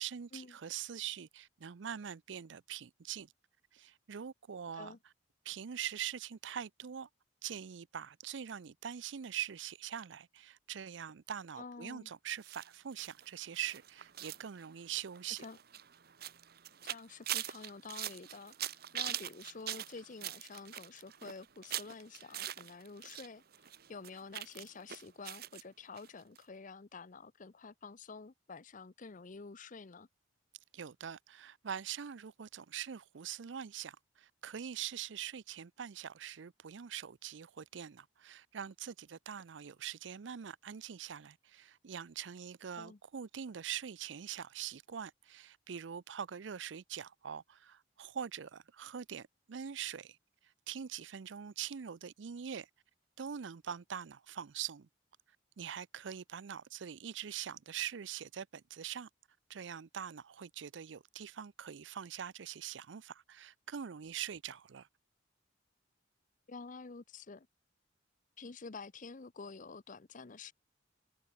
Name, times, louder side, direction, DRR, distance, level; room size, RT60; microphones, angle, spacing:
voice 1, 0.0-3.3 3.7-5.0 5.5-7.1 7.4-15.5 30.7-50.2 50.7-52.7 53.2-54.9 55.6-59.1 59.5-64.9, right 9 dB, 75° right, 0.5 m, -43 dB
voice 2, 11.6-12.1 15.4-15.6 16.8-30.1 42.8-43.0 66.5-67.5 68.4-70.5, left 4 dB, 45° left, 0.7 m, -49 dB
sound 1, 12.4-23.3 23.5-25.6 26.0-26.1 26.4-26.5, right 12 dB, 55° right, 1.0 m, -43 dB
head